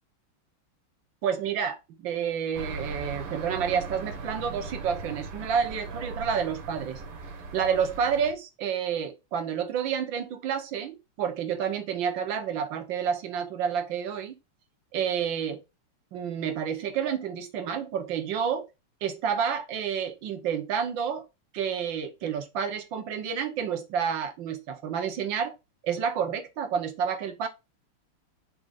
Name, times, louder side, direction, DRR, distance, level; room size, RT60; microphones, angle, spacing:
voice 1, 1.2-7.0 7.5-14.3 14.9-15.6 16.1-18.7 19.0-21.2 21.5-25.5 25.8-27.5, right 7 dB, 65° right, 1.6 m, -29 dB
sound 1, 2.5-8.3, right 3 dB, 90° right, 2.3 m, -38 dB
6.5 x 6.1 x 2.4 m
omnidirectional pair, 2.4 m